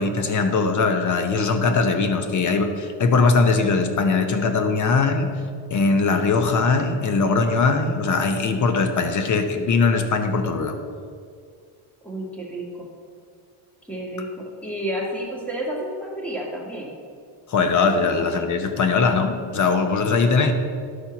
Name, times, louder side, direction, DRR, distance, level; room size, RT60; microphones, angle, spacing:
voice 1, 0.0-5.4 5.7-10.8 17.5-20.5, left 4 dB, 35° left, 7 dB, 0.8 m, -20 dB
voice 2, 12.0-12.9 13.9-16.9 18.1-18.2, right 1 dB, 5° left, -3 dB, 1.7 m, -31 dB
11.5 x 4.4 x 5.8 m, 2.2 s
cardioid pair, 140°, 50 cm